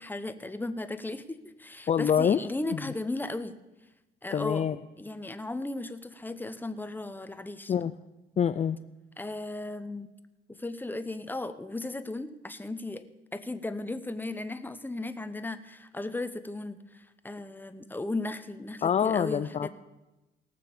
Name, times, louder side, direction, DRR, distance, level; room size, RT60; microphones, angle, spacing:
voice 1, 0.0-3.6 4.2-4.7 5.0-7.7 9.2-10.1 10.5-13.0 13.3-19.7, left 2 dB, 10° left, 10 dB, 1.0 m, -36 dB
voice 2, 1.9-2.4 2.7-2.8 4.3-4.8 7.7-7.9 8.4-8.8 18.8-19.7, left 8 dB, 35° left, 11 dB, 0.5 m, -25 dB
18.0 x 6.8 x 6.9 m, 1.0 s
cardioid pair, 90°, 20 cm